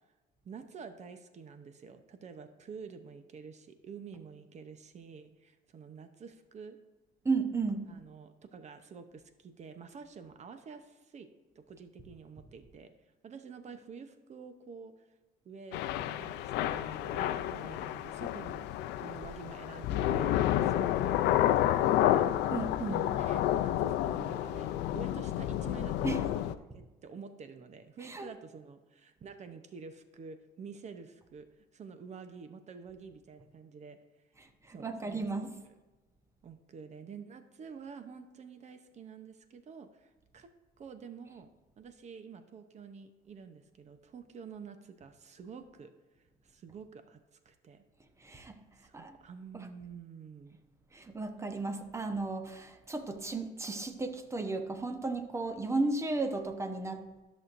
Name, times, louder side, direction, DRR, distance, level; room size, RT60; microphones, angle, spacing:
voice 1, 0.4-6.8 7.9-11.3 11.5-12.9 13.2-15.1 15.4-21.1 21.7-22.3 22.9-31.4 31.7-34.0 34.7-35.7 36.4-40.5 40.8-41.5 41.8-45.9 46.4-47.2 47.4-47.8 48.8-50.6, right 5 dB, 45° right, 9 dB, 0.8 m, -49 dB
voice 2, 7.2-7.9 22.5-23.0 26.0-26.2 28.0-28.3 34.7-35.5 48.2-48.6 48.9-49.2 50.9-57.0, right 3 dB, 15° right, 6 dB, 0.9 m, -34 dB
Thunder / Rain, 15.7-26.5, left 12 dB, 85° left, 0.4 m, -30 dB
13.5 x 6.4 x 2.6 m, 1.2 s
cardioid pair, 110°, 17 cm